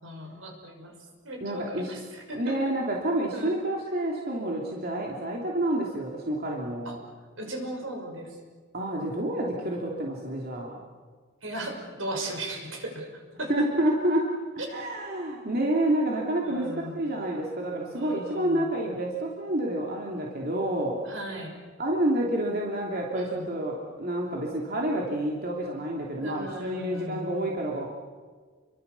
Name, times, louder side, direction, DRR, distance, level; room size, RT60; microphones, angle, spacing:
voice 1, 0.0-0.9 1.2-2.8 3.3-3.6 6.8-7.0 7.4-8.4 11.4-13.5 16.4-17.0 17.9-18.7 21.0-21.5 23.1-23.5 26.2-27.4, right 1 dB, 80° right, 2 dB, 6.3 m, -37 dB
voice 2, 1.4-2.0 2.3-7.0 8.7-10.8 13.5-14.3 14.7-21.0 21.8-27.9, right 1 dB, 50° right, -2 dB, 3.1 m, -29 dB
29.5 x 23.5 x 7.1 m, 1.5 s
head